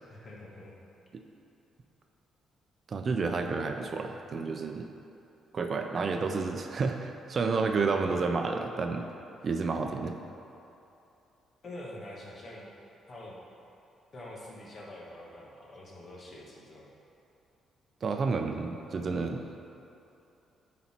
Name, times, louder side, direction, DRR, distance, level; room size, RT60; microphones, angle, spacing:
voice 1, 0.1-0.8 11.6-12.7 13.1-13.4 14.1-16.9, left 1 dB, 45° left, -4 dB, 1.6 m, -45 dB
voice 2, 2.9-4.9 5.5-9.1 9.4-10.2 18.0-19.6, right 4 dB, 45° right, 4 dB, 0.5 m, -30 dB
9.7 x 4.2 x 4.4 m, 2.8 s
cardioid pair, 90°, 0 cm